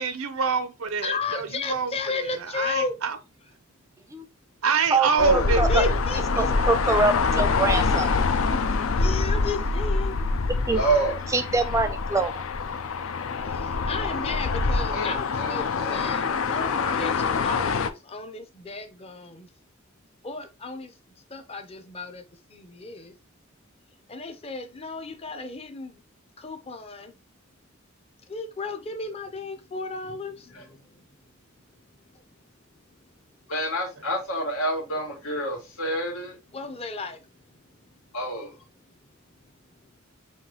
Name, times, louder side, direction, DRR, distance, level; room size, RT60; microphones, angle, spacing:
voice 1, 0.0-3.2 4.6-6.1, right 4 dB, 90° right, 0.7 m, -26 dB
voice 2, 1.0-2.9 5.7-6.5 8.9-10.3 10.7-10.9 13.4-19.5 20.2-20.9 21.3-22.2 22.5-23.1 24.1-26.0 26.4-27.2 28.3-30.9 36.5-37.2, left 4 dB, 30° left, 0.7 m, -34 dB
voice 3, 5.2-6.0 10.7-11.2 14.9-16.4 30.5-30.7 33.5-36.4 38.1-38.5, right 1 dB, 85° left, 1.7 m, -29 dB
sound 1, 5.2-17.9, left 4 dB, 70° left, 0.5 m, -25 dB
voice 4, 6.4-8.2 10.7-10.8 11.3-12.4, right 3 dB, 15° right, 0.4 m, -24 dB
5.8 x 2.7 x 2.9 m
head